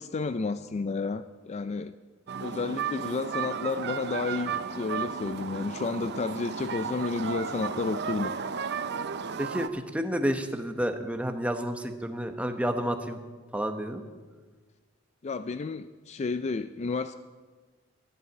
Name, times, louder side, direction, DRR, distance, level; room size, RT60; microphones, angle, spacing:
voice 1, 0.0-1.9 2.4-8.3 15.2-17.2, left 4 dB, 35° left, 12 dB, 0.4 m, -31 dB
sound 1, 2.3-9.7, right 6 dB, 55° right, 0.6 m, -34 dB
voice 2, 9.4-13.2 13.5-14.0, equal, 5° right, 6 dB, 1.0 m, -30 dB
12.5 x 11.0 x 7.8 m, 1.4 s
head